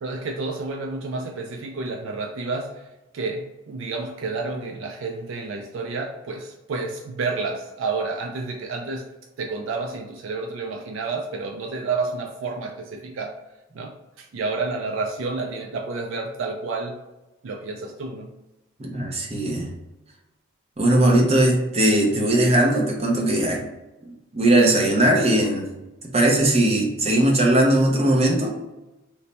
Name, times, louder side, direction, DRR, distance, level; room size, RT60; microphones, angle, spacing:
voice 1, 0.0-9.1 9.4-13.4 13.7-17.0 17.4-18.3 22.1-22.3, right 3 dB, 65° right, 2 dB, 0.3 m, -30 dB
voice 2, 18.8-19.7 20.8-23.6 24.3-25.7 26.1-28.5, right 1 dB, 30° right, -1 dB, 0.6 m, -19 dB
3.2 x 2.1 x 4.0 m, 1.0 s
head